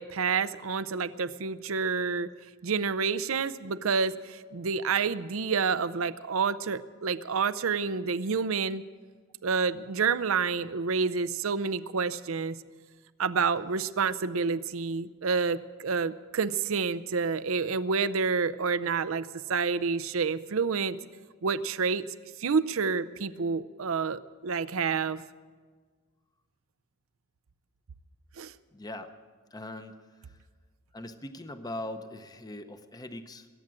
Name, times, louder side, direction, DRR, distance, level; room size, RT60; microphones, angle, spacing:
voice 1, 0.0-2.3 2.6-8.8 9.4-12.6 13.2-21.0 21.4-22.0 22.4-25.2 28.4-28.5, right 5 dB, 70° right, 16 dB, 0.6 m, -28 dB
voice 2, 28.7-29.1 29.5-30.4 30.9-33.5, left 1 dB, 20° left, 9 dB, 0.8 m, -41 dB
21.5 x 8.8 x 7.5 m, 1.5 s
head